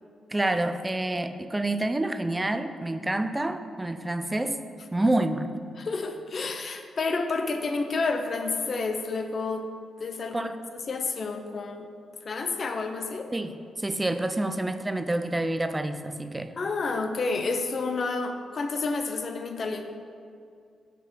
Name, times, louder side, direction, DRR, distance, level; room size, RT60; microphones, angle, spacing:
voice 1, 0.3-4.6 4.9-5.5 10.3-10.6 13.3-16.5, right 1 dB, 20° right, 9 dB, 0.5 m, -28 dB
voice 2, 5.8-9.7 10.0-11.9 12.2-13.3 16.6-19.9, left 3 dB, 55° left, 6 dB, 0.7 m, -30 dB
6.1 x 4.1 x 5.5 m, 2.3 s
supercardioid pair, 45°, 0 cm